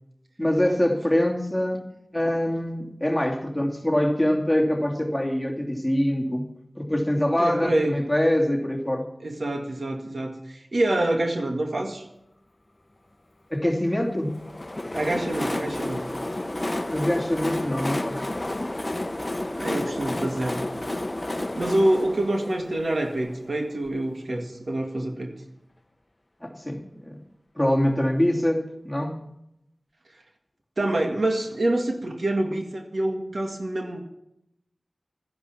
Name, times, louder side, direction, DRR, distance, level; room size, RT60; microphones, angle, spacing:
voice 1, 0.4-6.4 6.8-9.0 13.5-14.3 16.9-18.3 26.4-27.2 27.6-29.2, left 1 dB, 5° left, 0 dB, 2.8 m, -24 dB
voice 2, 7.4-8.0 9.2-12.0 14.9-16.1 19.6-20.6 21.6-25.3 30.8-34.0, right 1 dB, 70° right, 3 dB, 1.9 m, -26 dB
Train, 14.3-23.9, left 1 dB, 30° left, 0.8 m, -31 dB
13.0 x 10.5 x 7.2 m, 0.82 s
wide cardioid pair, 45°, 0 cm